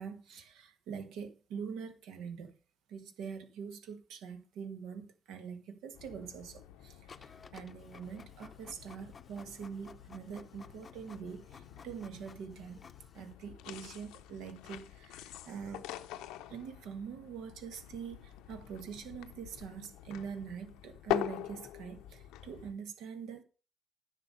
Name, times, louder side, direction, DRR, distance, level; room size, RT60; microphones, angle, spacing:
voice 1, 0.0-2.6 2.9-12.8 13.1-15.9 16.5-23.4, right 6 dB, 80° right, 1.5 m, -44 dB
sound 1, 5.9-22.7, left 13 dB, 90° left, 0.5 m, -44 dB
Printer, 7.1-13.3, left 5 dB, 35° left, 0.5 m, -56 dB
10.5 x 5.9 x 5.3 m
cardioid pair, 85°, 0 cm